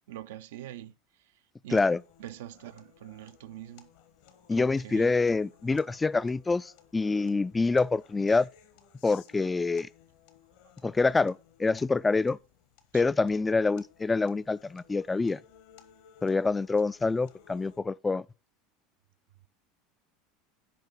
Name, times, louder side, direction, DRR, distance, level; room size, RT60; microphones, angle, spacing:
voice 1, 0.1-0.9 1.6-1.9 2.2-3.9 4.6-5.1 12.9-13.0, right 13 dB, 65° right, 0.5 m, -43 dB
voice 2, 1.7-2.0 4.5-8.5 9.0-9.9 10.8-12.4 12.9-15.4 16.2-18.3, left 3 dB, 15° left, 0.3 m, -26 dB
sound 1, 1.8-17.8, left 9 dB, 60° left, 1.2 m, -59 dB
9.2 x 5.2 x 5.6 m
figure-of-eight pair, 75°, 0 cm